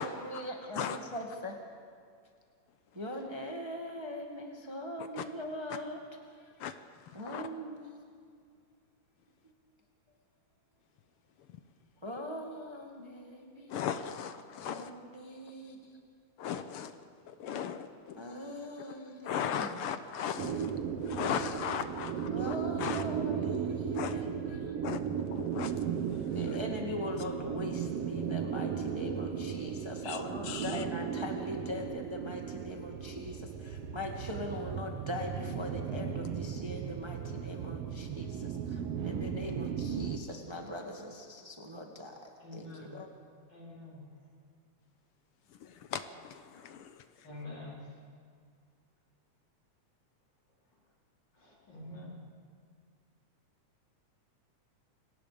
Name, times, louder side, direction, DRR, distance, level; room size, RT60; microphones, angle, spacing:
voice 1, 0.0-1.6 2.9-6.0 6.3-6.5 7.1-7.8 9.4-9.5 12.0-13.7 14.7-16.0 18.2-19.9 22.3-24.8 26.3-38.3 39.0-43.1, left 1 dB, 15° right, 1 dB, 1.3 m, -41 dB
voice 2, 13.7-14.9 16.4-16.9 17.3-18.2 19.2-22.5 22.8-23.0 23.9-24.1 24.8-25.7 30.0-30.2 30.5-30.7 45.6-46.9, left 8 dB, 70° left, 10 dB, 1.3 m, -37 dB
sound 1, 20.4-40.2, right 8 dB, 65° right, 1.8 m, -36 dB
voice 3, 42.4-43.0 43.5-44.1 47.2-47.7 51.4-52.1, left 2 dB, 35° left, -4 dB, 4.9 m, -46 dB
29.0 x 18.5 x 5.1 m, 2.2 s
omnidirectional pair, 3.3 m